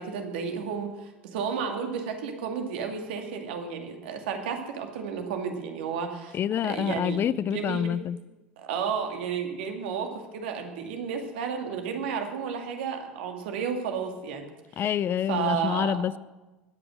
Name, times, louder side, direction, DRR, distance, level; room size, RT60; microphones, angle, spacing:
voice 1, 0.0-6.4 6.7-7.2 7.5-7.9 8.6-14.5 14.7-14.9 15.3-16.0, right 6 dB, 70° right, 4 dB, 2.3 m, -32 dB
voice 2, 6.3-8.2 14.8-16.2, left 9 dB, 40° left, 19 dB, 0.5 m, -27 dB
20.5 x 8.8 x 6.3 m, 1.1 s
hypercardioid pair, 75°, 6 cm